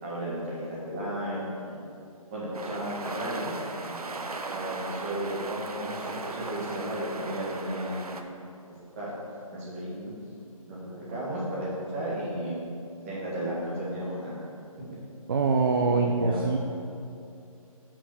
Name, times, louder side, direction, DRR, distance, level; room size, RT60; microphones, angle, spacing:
voice 1, 0.0-1.8 2.3-4.1 4.5-8.2 8.7-9.2 9.5-10.1 10.7-12.6 13.0-14.4 15.8-16.4, right 1 dB, 20° right, -8 dB, 1.9 m, -34 dB
sound 1, 2.5-8.2, right 3 dB, 90° right, 0.7 m, -37 dB
voice 2, 15.3-16.6, right 4 dB, 40° right, 2 dB, 0.5 m, -24 dB
5.8 x 5.3 x 6.2 m, 2.5 s
hypercardioid pair, 160°, 19 cm